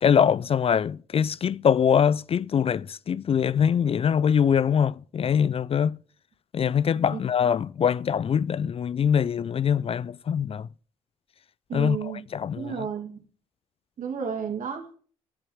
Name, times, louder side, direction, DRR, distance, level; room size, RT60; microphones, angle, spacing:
voice 1, 0.0-6.0 6.5-10.7 11.7-12.9, left 7 dB, 40° left, 0.4 m, -23 dB
voice 2, 11.7-12.2 12.6-13.2 14.0-14.9, right 6 dB, 60° right, 2.4 m, -32 dB
8.4 x 7.6 x 6.4 m
hypercardioid pair, 45°, 15 cm